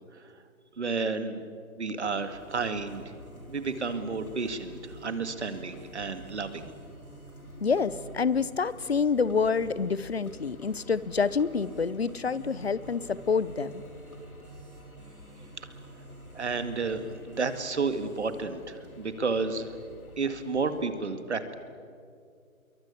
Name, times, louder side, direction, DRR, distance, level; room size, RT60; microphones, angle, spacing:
voice 1, 0.8-1.4 1.8-3.0 3.5-6.7 15.6-15.7 16.3-19.8 20.2-21.5, right 4 dB, 50° right, 10 dB, 2.1 m, -31 dB
sound 1, 2.0-20.8, right 1 dB, 85° left, 4.3 m, -48 dB
sound 2, 2.5-18.5, right 1 dB, 30° right, 7.5 m, -56 dB
voice 2, 7.6-13.8, left 5 dB, 45° left, 18 dB, 0.9 m, -27 dB
26.5 x 23.0 x 8.4 m, 2.3 s
figure-of-eight pair, 160°, 42 cm